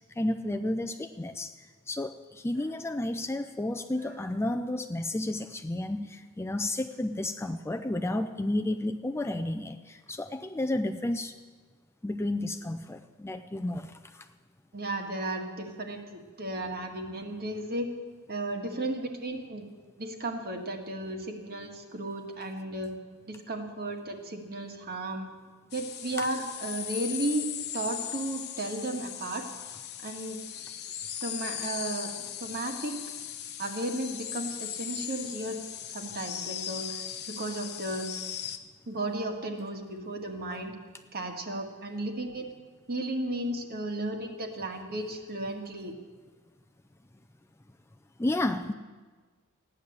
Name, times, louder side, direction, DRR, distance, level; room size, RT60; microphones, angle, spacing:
voice 1, 0.2-11.4 12.0-14.3 40.5-40.6 48.2-48.7, left 1 dB, 10° left, 6 dB, 0.4 m, -32 dB
voice 2, 14.7-17.9 18.3-19.7 20.0-22.9 23.3-25.3 25.7-27.5 27.7-29.5 30.0-30.6 31.2-32.1 32.4-33.0 33.6-35.6 35.9-38.1 38.9-40.8 41.1-42.5 42.9-46.0, right 1 dB, 45° right, 4 dB, 1.8 m, -34 dB
sound 1, 25.7-38.6, left 10 dB, 50° left, 0.9 m, -38 dB
15.5 x 10.0 x 7.9 m, 1.4 s
head